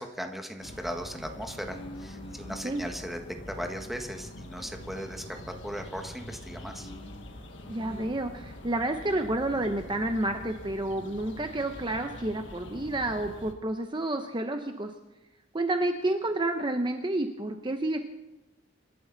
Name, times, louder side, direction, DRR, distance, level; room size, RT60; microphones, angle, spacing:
voice 1, 0.0-3.2 3.5-6.9, equal, ahead, 4 dB, 1.6 m, -38 dB
sound 1, 0.6-13.5, left 1 dB, 70° left, 1.7 m, -45 dB
sound 2, 1.6-2.9 3.4-5.2 5.4-8.1, left 1 dB, 30° left, 1.4 m, -49 dB
voice 2, 7.7-14.9 15.5-18.0, right 1 dB, 25° right, 6 dB, 0.9 m, -30 dB
26.5 x 12.5 x 4.1 m, 1.0 s
head